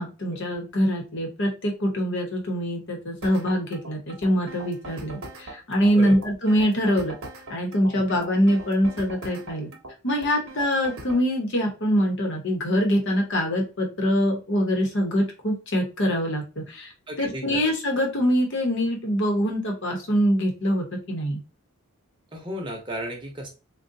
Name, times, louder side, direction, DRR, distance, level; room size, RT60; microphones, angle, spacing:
voice 1, 0.0-7.2 7.5-9.7 10.0-16.9 17.2-21.4, equal, 55° left, 2 dB, 1.0 m, -24 dB
sound 1, 3.2-11.2, right 2 dB, 65° right, 0.9 m, -41 dB
voice 2, 5.9-6.2 17.1-17.6 22.3-23.5, equal, 20° right, 0 dB, 0.9 m, -34 dB
3.8 x 2.2 x 2.6 m, 0.31 s
head